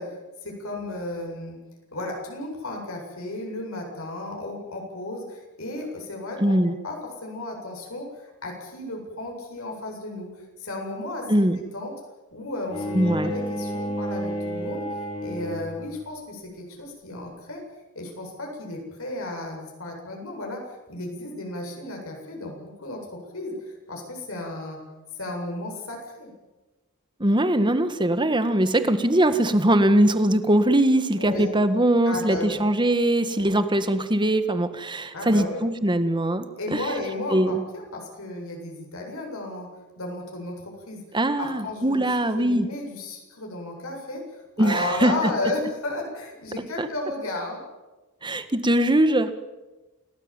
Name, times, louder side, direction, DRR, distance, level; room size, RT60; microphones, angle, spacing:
voice 1, 0.0-1.6 1.9-6.5 6.8-11.2 11.5-11.9 12.3-17.6 17.9-23.0 23.3-24.8 25.1-26.3 31.2-31.5 32.1-32.6 35.1-35.6 36.6-39.7 40.0-41.0 41.4-47.6, left 2 dB, 70° left, 1 dB, 7.8 m, -34 dB
voice 2, 6.4-6.7 11.3-11.6 12.9-13.3 27.2-36.8 37.3-37.6 41.1-42.7 44.6-45.1 46.8-46.9 48.2-49.3, right 1 dB, 20° right, 10 dB, 1.8 m, -21 dB
Bowed string instrument, 12.7-15.9, equal, 25° left, 4.2 m, -31 dB
29.0 x 19.0 x 9.1 m, 1.1 s
head